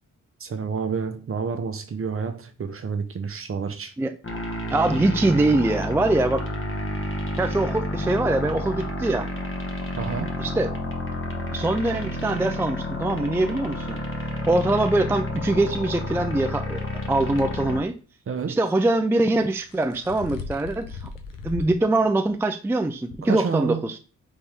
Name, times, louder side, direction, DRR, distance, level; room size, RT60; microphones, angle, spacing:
voice 1, 0.4-3.9 9.9-10.4 18.3-18.6 23.2-23.8, right 5 dB, 40° right, 0.7 m, -29 dB
sound 1, 4.2-17.8, left 1 dB, 40° left, 1.2 m, -30 dB
voice 2, 4.7-6.4 7.4-9.3 10.4-10.7 11.5-14.0 14.5-18.0 18.5-21.0 21.4-23.9, right 2 dB, 5° right, 0.4 m, -23 dB
sound 2, 17.4-17.5 19.4-21.8 22.2-22.3 23.1-23.2, left 4 dB, 75° left, 0.9 m, -37 dB
4.1 x 3.5 x 3.4 m
cardioid pair, 65°, 33 cm